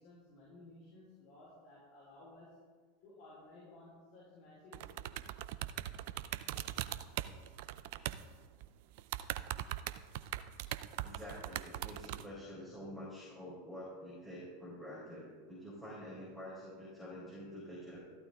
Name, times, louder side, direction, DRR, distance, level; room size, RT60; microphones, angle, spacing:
voice 1, 0.0-2.6 3.0-5.4, left 2 dB, 50° left, -6 dB, 4.4 m, -57 dB
sound 1, 4.7-8.2 8.6-8.7 9.0-12.3, right 14 dB, 55° right, 0.5 m, -40 dB
voice 2, 11.0-18.0, equal, 5° left, -7 dB, 4.4 m, -48 dB
14.0 x 12.5 x 3.7 m, 1.5 s
figure-of-eight pair, 80°, 0 cm